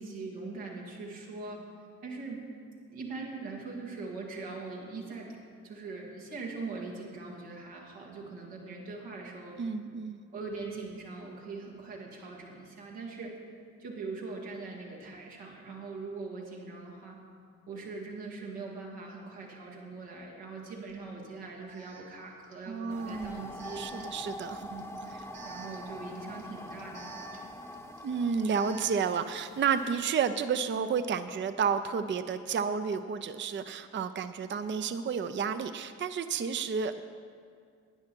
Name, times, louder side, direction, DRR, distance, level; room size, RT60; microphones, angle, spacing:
voice 1, 0.0-1.6 2.0-2.5 2.9-5.3 5.6-9.6 10.3-13.3 13.8-17.2 17.7-24.0 24.6-27.4, right 3 dB, 85° right, -3 dB, 1.9 m, -41 dB
voice 2, 9.6-10.2 22.7-23.4 23.8-24.6 28.0-37.0, right 6 dB, 30° right, 11 dB, 0.5 m, -31 dB
Alarm, 20.9-21.0 21.7-29.1, right 5 dB, 70° right, 2.1 m, -51 dB
sound 1, 22.9-30.0, left 1 dB, 5° left, 0.8 m, -45 dB
12.0 x 9.5 x 4.5 m, 2.2 s
hypercardioid pair, 40°, 38 cm